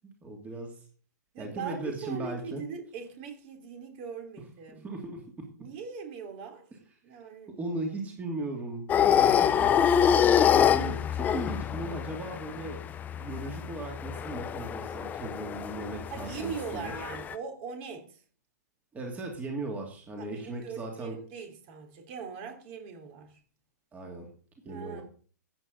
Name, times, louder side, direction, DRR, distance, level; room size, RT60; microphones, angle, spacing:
voice 1, 0.2-0.7 1.4-2.6 4.8-5.5 7.5-9.8 10.4-12.8 13.2-16.9 18.9-21.2 23.9-24.3 24.6-25.0, right 2 dB, 15° right, 2.7 m, -37 dB
voice 2, 1.3-4.9 5.6-6.7 7.0-7.5 16.1-18.2 20.2-23.4 24.7-25.0, right 6 dB, 40° right, 3.3 m, -40 dB
sound 1, 8.9-17.3, left 9 dB, 15° left, 0.6 m, -26 dB
13.5 x 8.8 x 4.0 m
hypercardioid pair, 125°, 10 cm